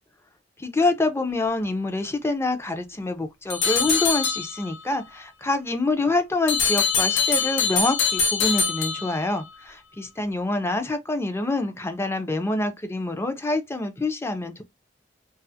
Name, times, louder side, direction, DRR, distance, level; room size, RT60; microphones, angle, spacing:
voice 1, 0.6-14.6, left 2 dB, 15° left, 0.4 m, -26 dB
sound 1, 3.5-4.8 6.5-9.5, left 5 dB, 75° left, 0.6 m, -23 dB
2.4 x 2.4 x 2.6 m
head